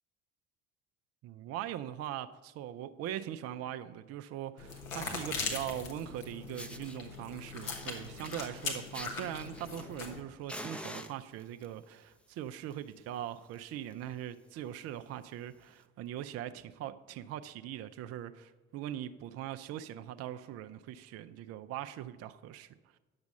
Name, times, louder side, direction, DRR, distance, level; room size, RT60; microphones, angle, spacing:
voice 1, 1.2-23.0, right 11 dB, 40° right, 11 dB, 0.5 m, -41 dB
sound 1, 4.6-10.2, left 4 dB, 75° left, 1.5 m, -40 dB
Fire, 6.1-6.2 6.5-7.0 7.5-10.2 10.5-11.7 12.5-12.7 13.0-13.1 13.5-13.6 13.9-14.1 14.7-14.8 15.7-15.8, equal, 5° left, 0.6 m, -46 dB
9.6 x 7.0 x 5.3 m, 1.3 s
figure-of-eight pair, 55°, 40 cm